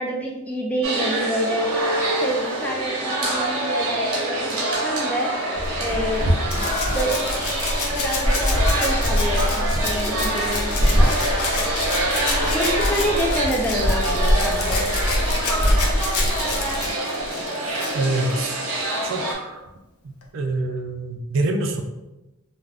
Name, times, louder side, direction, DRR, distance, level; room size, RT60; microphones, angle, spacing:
voice 1, 0.0-5.4 5.7-6.3 6.9-7.3 7.9-11.1 12.0-14.8, equal, 5° left, -2 dB, 0.3 m, -28 dB
sound 1, 0.8-19.3, right 1 dB, 90° right, 0.9 m, -26 dB
Dog, 5.5-16.9, equal, 85° left, 1.1 m, -24 dB
Rattle (instrument), 6.5-18.8 20.2-20.3, left 4 dB, 70° left, 0.5 m, -30 dB
voice 2, 17.9-18.7 19.0-19.6 20.0-21.8, right 2 dB, 60° right, 4 dB, 0.4 m, -26 dB
2.4 x 2.4 x 3.3 m, 0.99 s
head